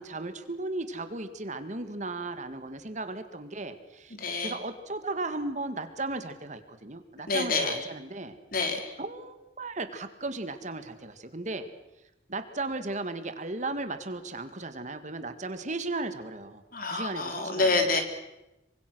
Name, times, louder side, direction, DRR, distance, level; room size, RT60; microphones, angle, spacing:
voice 1, 0.0-8.4 9.0-11.7 12.3-16.6 16.9-17.9, right 2 dB, 40° right, 9 dB, 1.9 m, -36 dB
voice 2, 4.2-4.6 7.3-7.9 8.5-9.0 16.7-18.0, left 3 dB, 50° left, 5 dB, 3.7 m, -27 dB
26.5 x 24.5 x 6.2 m, 0.97 s
head